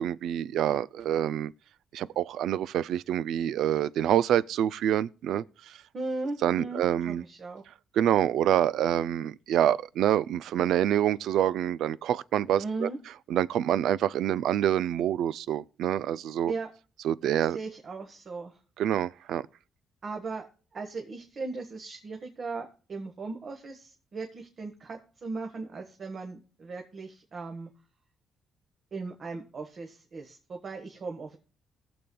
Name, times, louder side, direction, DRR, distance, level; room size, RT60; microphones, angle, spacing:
voice 1, 0.0-1.5 1.9-5.4 6.4-7.2 8.0-12.9 13.3-16.5 17.0-17.6 18.8-19.4, right 11 dB, 80° right, 0.4 m, -26 dB
voice 2, 5.9-7.6 12.6-13.0 16.5-16.7 17.5-18.6 20.0-20.5 20.7-27.7 28.9-31.4, right 3 dB, 45° right, 1.3 m, -37 dB
19.5 x 6.9 x 2.2 m
cardioid pair, 90°, 0 cm